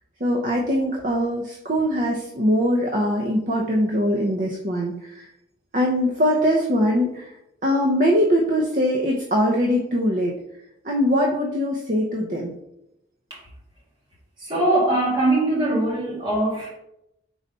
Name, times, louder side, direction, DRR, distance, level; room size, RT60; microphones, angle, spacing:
voice 1, 0.2-5.3 5.7-7.3 7.6-10.4 10.8-12.5, equal, 45° right, -1 dB, 0.7 m, -22 dB
voice 2, 14.4-16.7, right 2 dB, 25° right, -6 dB, 2.3 m, -21 dB
4.8 x 4.0 x 5.4 m, 0.81 s
head